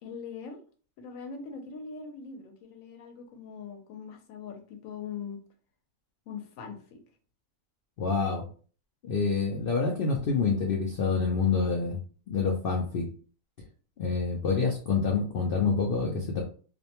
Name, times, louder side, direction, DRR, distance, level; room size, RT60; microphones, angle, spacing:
voice 1, 0.0-0.6 1.0-5.4 6.3-7.0, left 6 dB, 70° left, 4 dB, 1.0 m, -41 dB
voice 2, 8.0-8.5 9.0-12.0 12.3-13.1 14.0-16.4, left 4 dB, 90° left, 0 dB, 0.4 m, -27 dB
2.5 x 2.1 x 2.8 m, 0.41 s
omnidirectional pair, 1.5 m